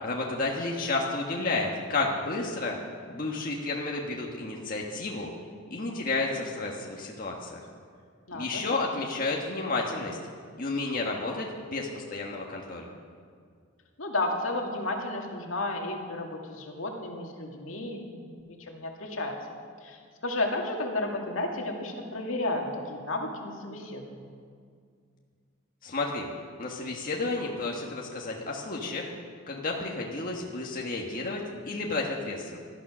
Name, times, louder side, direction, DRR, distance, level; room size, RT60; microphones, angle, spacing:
voice 1, 0.0-2.8 3.1-5.3 5.7-7.6 8.3-10.2 10.6-12.9 25.8-26.3 26.6-29.1 29.5-32.6, left 3 dB, 45° left, -1 dB, 1.5 m, -31 dB
voice 2, 8.3-8.8 14.0-19.4 19.8-24.3, left 2 dB, 75° left, 1 dB, 2.3 m, -33 dB
17.5 x 12.5 x 6.2 m, 2.1 s
head